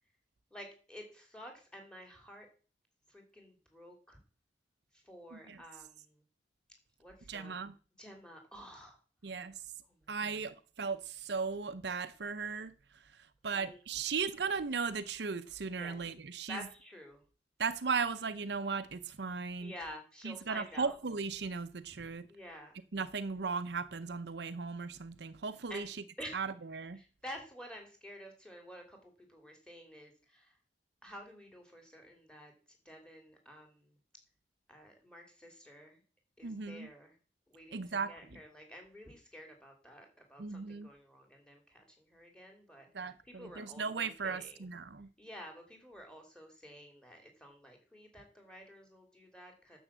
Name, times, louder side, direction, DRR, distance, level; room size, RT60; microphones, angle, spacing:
voice 1, 0.5-2.5 3.1-4.2 5.0-6.2 7.0-7.6 8.0-9.0 9.9-10.0 13.5-14.1 15.8-16.0 16.5-17.2 19.6-21.0 22.3-22.7 25.7-25.9 26.2-26.4 26.9-30.5 31.0-32.5 32.8-33.9 34.7-36.0 36.4-37.1 37.5-44.6 45.2-49.8, equal, 5° left, 3.0 m, -51 dB
voice 2, 7.3-7.7 9.2-9.5 10.1-12.7 13.4-16.6 17.6-19.7 20.2-22.3 22.9-26.0 26.3-27.0 36.4-36.9 37.7-38.1 40.4-40.9 42.9-45.1, right 5 dB, 65° right, 0.6 m, -37 dB
10.0 x 7.1 x 7.3 m
head